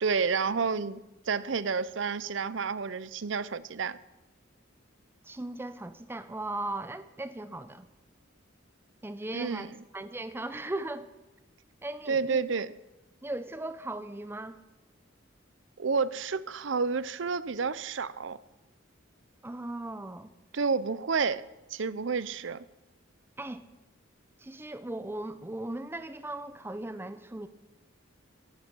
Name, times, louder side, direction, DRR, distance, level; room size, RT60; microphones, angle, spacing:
voice 1, 0.0-4.0 9.3-9.7 12.1-12.7 15.8-18.4 20.5-21.4 21.7-22.6, right 5 dB, 65° right, 0.6 m, -30 dB
voice 2, 5.2-7.9 9.0-11.1 11.8-12.4 13.2-14.6 19.4-20.3 23.4-23.6 24.4-27.5, right 2 dB, 10° right, 0.5 m, -37 dB
14.5 x 10.5 x 6.2 m
head